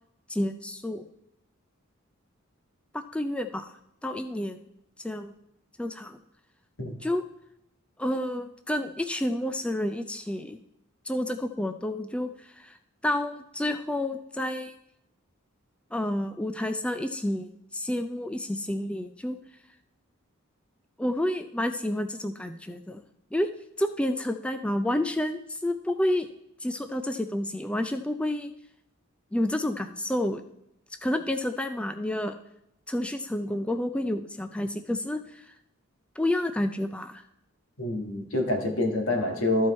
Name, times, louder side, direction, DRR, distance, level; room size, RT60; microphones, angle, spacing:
voice 1, 0.3-1.0 2.9-3.7 4.0-4.6 5.0-5.3 5.8-6.2 7.0-7.2 8.0-10.6 11.1-12.8 13.0-14.7 15.9-19.4 21.0-23.0 23.3-23.5 23.8-26.3 26.6-28.5 29.3-30.4 31.0-32.3 32.9-35.5 36.2-37.2, left 1 dB, 5° left, 8 dB, 0.3 m, -29 dB
voice 2, 37.8-39.7, left 1 dB, 85° left, 3 dB, 1.7 m, -26 dB
13.0 x 4.6 x 4.2 m, 0.80 s
head